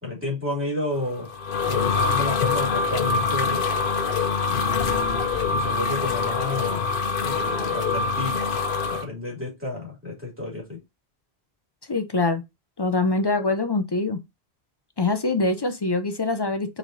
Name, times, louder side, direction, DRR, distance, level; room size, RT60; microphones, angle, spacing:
voice 1, 0.0-1.3 1.7-3.6 4.5-6.9 7.2-8.4 8.9-10.8, left 2 dB, 10° right, 2.7 m, -31 dB
sound 1, 1.1-9.0, left 4 dB, 60° left, 0.8 m, -24 dB
voice 2, 11.9-12.4 12.8-14.2 15.0-16.8, left 3 dB, 40° left, 0.3 m, -24 dB
4.6 x 4.0 x 2.6 m
omnidirectional pair, 1.1 m